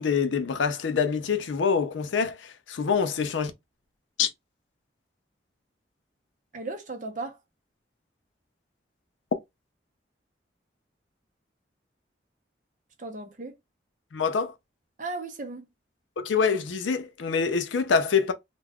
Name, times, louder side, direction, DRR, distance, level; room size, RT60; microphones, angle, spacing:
voice 1, 0.0-3.5 4.2-4.3 14.1-14.5 16.2-18.3, left 6 dB, 85° left, 0.5 m, -25 dB
voice 2, 6.5-7.4 13.0-13.6 15.0-15.7, right 3 dB, 45° right, 0.6 m, -36 dB
2.3 x 2.2 x 3.4 m
head